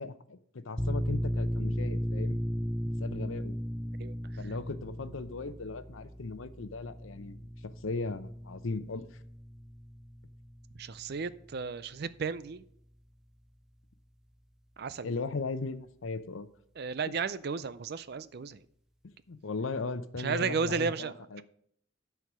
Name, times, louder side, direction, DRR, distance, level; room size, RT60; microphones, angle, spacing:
voice 1, 0.0-2.4 3.0-3.6 4.4-7.4 7.8-9.2 15.0-16.5 17.1-17.2 19.3-21.4, left 3 dB, 85° left, 0.7 m, -37 dB
sound 1, 0.8-12.1, equal, 5° right, 0.5 m, -36 dB
voice 2, 10.8-12.6 14.8-15.1 16.8-18.6 20.2-21.4, right 5 dB, 55° right, 0.5 m, -34 dB
11.5 x 4.7 x 6.1 m
head